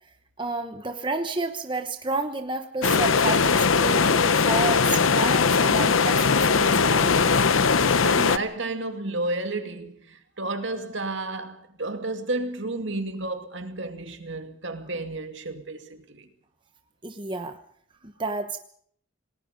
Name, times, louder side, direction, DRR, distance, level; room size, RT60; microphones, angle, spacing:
voice 1, 0.4-7.3 17.0-17.6 18.0-18.6, right 3 dB, 25° right, 1.1 m, -31 dB
sound 1, 2.8-8.4, left 5 dB, 85° left, 0.9 m, -20 dB
voice 2, 8.0-16.3, right 2 dB, 65° right, 2.5 m, -32 dB
28.0 x 19.5 x 5.3 m
head